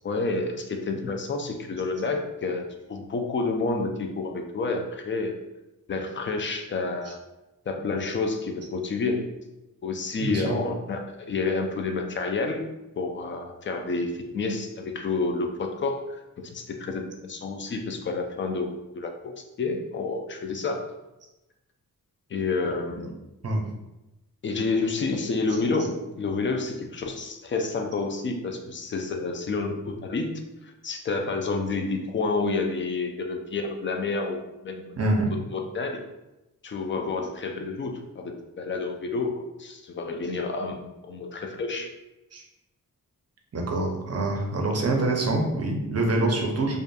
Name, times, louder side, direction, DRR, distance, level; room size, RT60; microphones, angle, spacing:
voice 1, 0.0-5.3 5.9-7.2 7.7-9.3 9.8-12.6 13.0-18.7 18.9-19.3 19.6-20.8 22.3-23.2 24.4-30.3 30.6-35.2 35.5-36.0 36.6-41.9, left 3 dB, 35° left, 4 dB, 0.4 m, -29 dB
voice 2, 10.2-10.6 23.4-23.6 35.0-35.3 42.3-42.4 43.5-46.8, right 2 dB, 45° right, 1 dB, 0.6 m, -25 dB
2.5 x 2.4 x 2.2 m, 0.96 s
cardioid pair, 60°, 35 cm